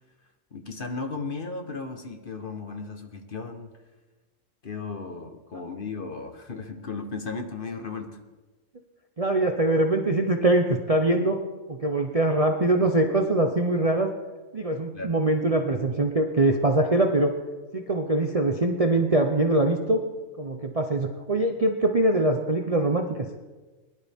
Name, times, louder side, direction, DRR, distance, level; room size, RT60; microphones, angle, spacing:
voice 1, 0.5-3.7 4.6-8.2 14.9-15.1, left 4 dB, 40° left, 5 dB, 1.2 m, -35 dB
voice 2, 9.2-11.4 11.7-14.1 14.5-17.3 17.7-20.0 20.4-23.3, right 2 dB, 35° right, 4 dB, 0.7 m, -23 dB
21.0 x 11.5 x 3.6 m, 1.2 s
omnidirectional pair, 1.5 m